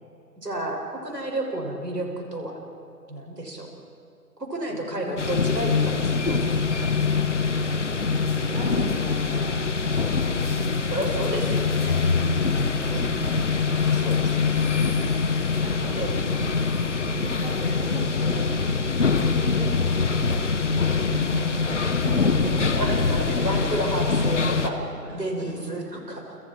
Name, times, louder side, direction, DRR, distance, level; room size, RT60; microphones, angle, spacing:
voice 1, 0.4-2.6 3.1-3.7 4.4-6.4 6.8-6.9 10.9-12.1 12.9-13.3 13.7-15.1 15.9-16.5 21.0-21.5 22.7-24.8 25.1-26.2, right 1 dB, 75° right, 1 dB, 6.6 m, -31 dB
voice 2, 4.7-5.1 7.9-10.8 12.2-12.7 13.7-14.0 15.6-20.5 20.8-21.5 21.8-22.8 23.1-24.3 25.0-25.1 25.5-26.0, right 2 dB, 40° right, -2 dB, 6.1 m, -38 dB
sound 1, 5.2-24.7, left 4 dB, 45° left, 1.6 m, -24 dB
30.0 x 28.0 x 4.7 m, 2.8 s
figure-of-eight pair, 150°, 48 cm